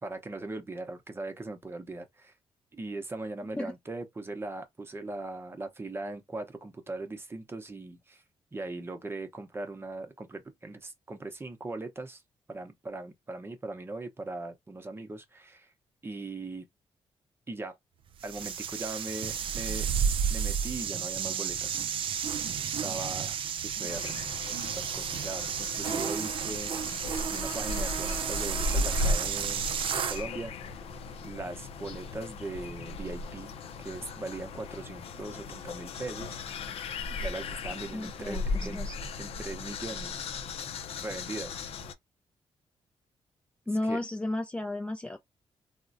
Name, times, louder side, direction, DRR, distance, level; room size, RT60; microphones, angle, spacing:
voice 1, 0.0-2.3 2.7-8.2 8.5-12.2 12.5-15.7 16.0-16.7 17.5-17.8 18.2-19.9 20.3-21.8 22.1-22.2 22.6-24.1 24.5-26.7 27.3-29.7 29.9-30.5 31.2-33.5 33.8-36.4 37.2-38.8 39.2-40.3 41.0-41.6 43.8-44.0, right 2 dB, 25° right, 0.7 m, -39 dB
sound 1, 18.2-30.2, right 7 dB, 60° right, 0.4 m, -32 dB
sound 2, 23.9-41.9, left 3 dB, 75° left, 0.5 m, -36 dB
voice 2, 37.9-39.0 43.7-45.2, left 1 dB, 10° left, 0.3 m, -33 dB
3.6 x 2.1 x 2.5 m
cardioid pair, 105°, 10 cm